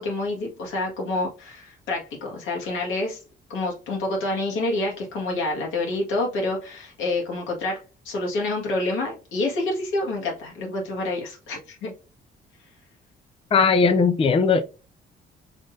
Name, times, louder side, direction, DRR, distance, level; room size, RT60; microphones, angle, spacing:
voice 1, 0.0-3.2 3.5-7.8 8.0-11.9, left 2 dB, 85° left, 1.8 m, -28 dB
voice 2, 13.5-14.6, left 5 dB, 30° left, 0.4 m, -18 dB
5.0 x 3.7 x 2.7 m
cardioid pair, 90°, 20 cm